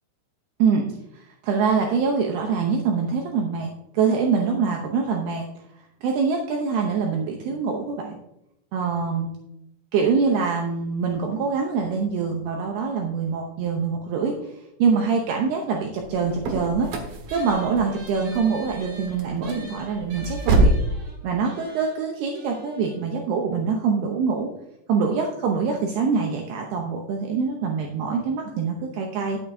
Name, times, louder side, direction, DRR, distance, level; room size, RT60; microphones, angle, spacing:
voice 1, 1.1-5.5 6.0-8.2 8.7-9.3 9.9-14.3 14.8-16.9 17.3-20.7 21.2-24.5 24.9-29.4, right 5 dB, 85° right, 1 dB, 2.2 m, -24 dB
sound 1, 16.0-20.9, right 1 dB, 65° right, 2.5 m, -25 dB
sound 2, 17.3-24.1, right 1 dB, 40° right, 3.7 m, -46 dB
12.5 x 8.3 x 2.7 m, 0.82 s
omnidirectional pair, 5.9 m